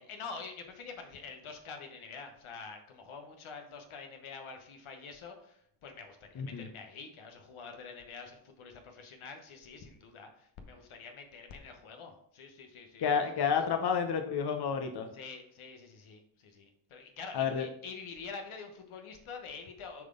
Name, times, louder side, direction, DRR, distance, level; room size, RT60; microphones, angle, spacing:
voice 1, 0.1-13.2 15.1-20.0, left 5 dB, 75° left, 5 dB, 1.1 m, -46 dB
voice 2, 6.4-6.7 13.0-15.1 17.3-17.6, left 6 dB, 50° left, 5 dB, 0.8 m, -30 dB
7.4 x 3.8 x 3.7 m, 0.71 s
supercardioid pair, 45°, 50 cm